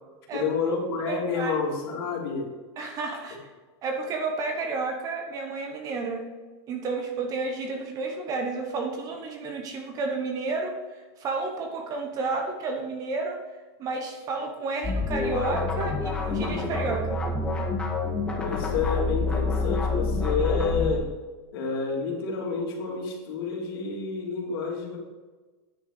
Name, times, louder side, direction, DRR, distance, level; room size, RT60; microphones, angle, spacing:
voice 1, 0.3-2.5 18.4-21.1 21.5-25.0, left 5 dB, 60° left, -1 dB, 2.9 m, -29 dB
voice 2, 1.1-1.6 2.8-3.5 3.8-6.3 6.7-10.8 11.2-13.5 13.8-17.2, right 3 dB, 25° right, 4 dB, 1.1 m, -31 dB
sound 1, 14.8-20.9, left 3 dB, 10° left, 1.2 m, -27 dB
10.0 x 6.4 x 5.0 m, 1.3 s
supercardioid pair, 170°, 14 cm